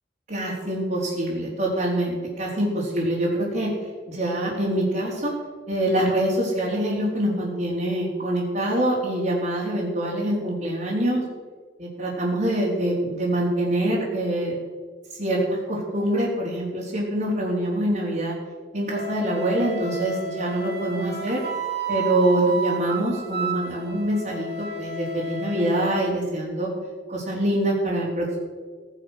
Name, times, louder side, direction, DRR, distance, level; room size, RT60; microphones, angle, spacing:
voice 1, 0.3-3.7 4.1-5.3 5.7-11.2 11.8-14.6 15.2-18.3 18.7-21.4 21.9-26.7 27.1-28.4, right 1 dB, 45° right, -7 dB, 4.0 m, -25 dB
Wind instrument woodwind instrument, 18.9-26.0, right 3 dB, 65° right, 2.6 m, -32 dB
18.0 x 10.5 x 6.6 m, 1.5 s
head